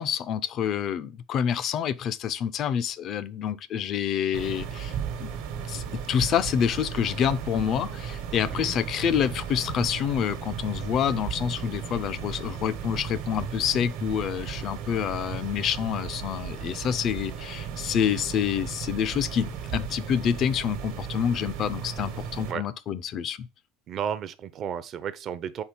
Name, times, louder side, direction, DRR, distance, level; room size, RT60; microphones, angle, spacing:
voice 1, 0.0-5.3 5.7-23.5, left 8 dB, 40° left, 0.4 m, -27 dB
sound 1, 4.3-22.5, right 7 dB, 70° right, 1.1 m, -35 dB
voice 2, 8.5-8.9 18.0-18.3 22.5-22.6 23.9-25.6, right 8 dB, 35° right, 0.5 m, -33 dB
4.4 x 4.0 x 5.3 m
cardioid pair, 155°, 0 cm